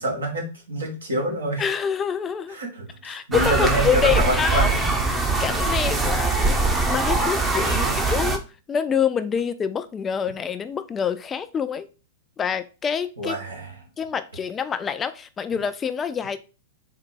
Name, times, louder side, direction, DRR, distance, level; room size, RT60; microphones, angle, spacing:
voice 1, 0.0-1.6 2.5-4.8 6.0-6.2 6.5-6.6 7.7-7.9 13.2-13.7, right 1 dB, 80° right, 1.3 m, -27 dB
voice 2, 1.6-2.6 3.0-4.7 5.1-11.9 12.4-13.4 14.0-16.4, left 7 dB, 20° left, 0.3 m, -26 dB
sound 1, 3.3-8.4, right 3 dB, 15° right, 0.6 m, -22 dB
4.0 x 2.2 x 4.4 m
figure-of-eight pair, 105°, 0 cm